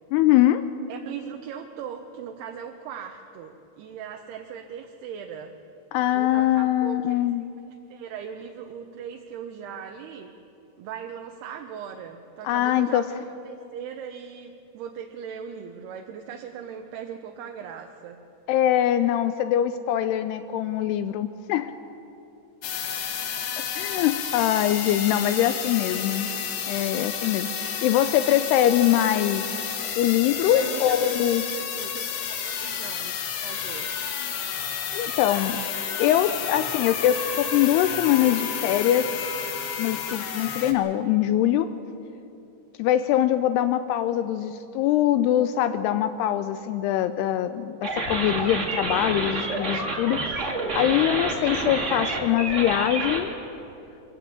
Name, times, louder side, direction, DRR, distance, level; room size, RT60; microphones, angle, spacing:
voice 1, 0.1-0.6 5.9-7.5 12.4-13.1 18.5-21.7 23.7-26.3 26.7-29.5 30.0-31.5 34.9-35.6 36.0-39.1 39.8-41.7 42.8-50.2 50.8-53.3, left 12 dB, 80° left, 10 dB, 2.6 m, -23 dB
voice 2, 0.9-5.6 6.1-7.2 7.9-10.3 10.8-18.2 30.5-33.9, right 8 dB, 80° right, 3 dB, 2.8 m, -39 dB
sound 1, 22.6-40.7, left 7 dB, 60° left, 2.4 m, -31 dB
sound 2, 39.2-40.5 43.3-43.4, equal, 30° left, 3.5 m, -46 dB
sound 3, 47.8-53.2, right 2 dB, 35° right, 1.2 m, -28 dB
23.0 x 15.0 x 8.8 m, 2.8 s
omnidirectional pair, 4.8 m